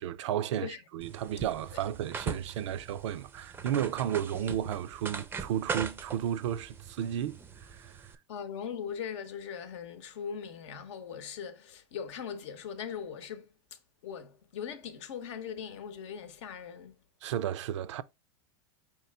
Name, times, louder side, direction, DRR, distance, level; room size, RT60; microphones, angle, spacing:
voice 1, 0.0-8.1 17.2-18.0, right 10 dB, 85° right, 0.4 m, -33 dB
sound 1, 1.0-8.2, right 5 dB, 15° right, 0.4 m, -41 dB
voice 2, 8.3-13.5 14.0-16.9, left 7 dB, 75° left, 0.8 m, -40 dB
4.7 x 3.0 x 3.3 m
supercardioid pair, 115°, 15 cm